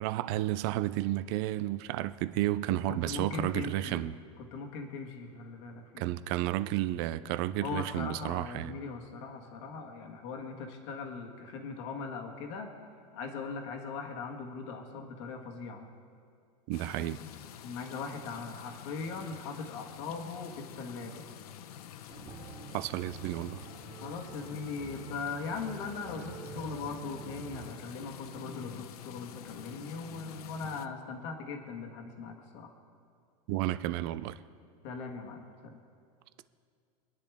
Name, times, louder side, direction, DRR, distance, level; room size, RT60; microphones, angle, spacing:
voice 1, 0.0-4.1 6.0-8.8 16.7-17.2 22.7-23.6 33.5-34.4, right 15 dB, 40° right, 0.4 m, -32 dB
voice 2, 2.7-4.1 4.4-6.2 7.6-15.9 17.6-21.3 23.9-32.7 34.8-35.8, left 4 dB, 50° left, 1.7 m, -40 dB
sound 1, 16.7-30.9, left 11 dB, 80° left, 0.8 m, -48 dB
sound 2, 22.1-27.7, right 6 dB, 20° right, 1.0 m, -47 dB
25.5 x 10.0 x 3.6 m
supercardioid pair, 170°, 19 cm